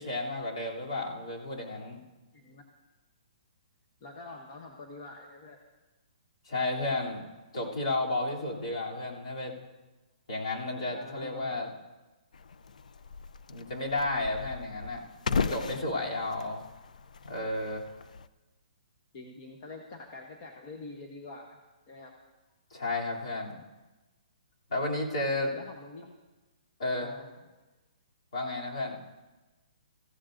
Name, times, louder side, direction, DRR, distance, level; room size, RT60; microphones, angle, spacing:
voice 1, 0.0-2.0 6.5-7.2 7.5-9.5 10.3-11.7 13.5-16.6 17.2-17.8 22.7-23.6 24.7-25.6 26.8-27.1 28.3-29.0, left 2 dB, 55° left, -3 dB, 2.9 m, -32 dB
voice 2, 2.3-2.7 4.0-5.6 10.9-11.5 19.1-21.6 21.9-22.1 25.5-26.2 27.0-27.3, left 3 dB, 25° left, 1 dB, 0.8 m, -46 dB
sound 1, 12.3-18.3, left 5 dB, 90° left, 0.5 m, -37 dB
19.5 x 14.5 x 2.6 m, 1.1 s
hypercardioid pair, 175°, 4 cm